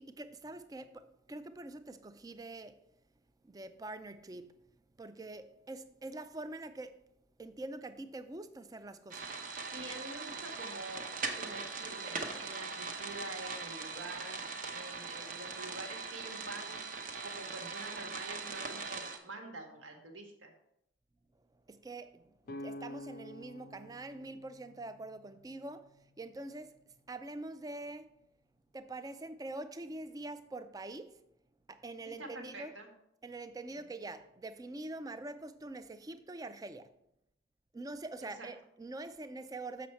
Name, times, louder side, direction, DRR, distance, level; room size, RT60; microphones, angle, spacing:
voice 1, 0.0-2.8 3.4-4.6 5.0-7.0 7.4-9.5 21.3-26.8 27.1-28.1 28.7-31.2 31.7-32.7 33.2-36.9 37.7-39.9, right 2 dB, 20° right, 0.3 m, -45 dB
sound 1, 9.1-19.2, right 4 dB, 45° right, 0.8 m, -41 dB
voice 2, 9.7-14.4 14.7-16.8 17.2-20.5 32.2-32.9 33.7-33.8 38.4-38.5, right 2 dB, 80° right, 1.5 m, -47 dB
sound 2, 22.5-26.3, left 1 dB, 50° left, 0.4 m, -49 dB
7.0 x 6.1 x 4.4 m
head